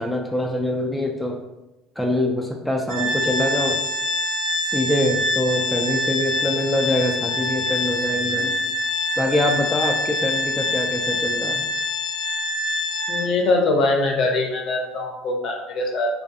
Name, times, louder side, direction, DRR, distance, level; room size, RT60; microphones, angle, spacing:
voice 1, 0.0-1.4 2.0-3.8 4.7-8.5 9.2-11.6, left 1 dB, 5° left, 0 dB, 0.3 m, -24 dB
Organ, 2.9-13.5, left 1 dB, 90° left, 0.8 m, -25 dB
voice 2, 13.1-16.1, left 2 dB, 55° left, 1 dB, 0.6 m, -22 dB
2.4 x 2.3 x 2.6 m, 0.97 s
supercardioid pair, 105°, 0 cm